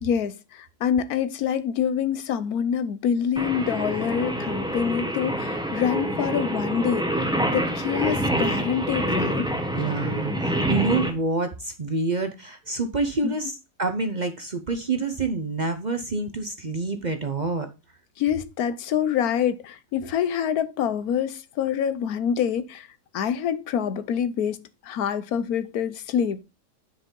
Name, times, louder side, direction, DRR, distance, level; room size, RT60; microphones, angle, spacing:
voice 1, 0.0-9.5 13.2-13.3 18.2-22.9 23.1-24.6 24.8-26.4, left 8 dB, 80° left, 1.3 m, -26 dB
Singing, 3.4-11.1, right 1 dB, 5° right, 1.0 m, -26 dB
voice 2, 9.7-17.7, right 3 dB, 40° right, 0.7 m, -27 dB
9.6 x 5.2 x 3.7 m
omnidirectional pair, 1.6 m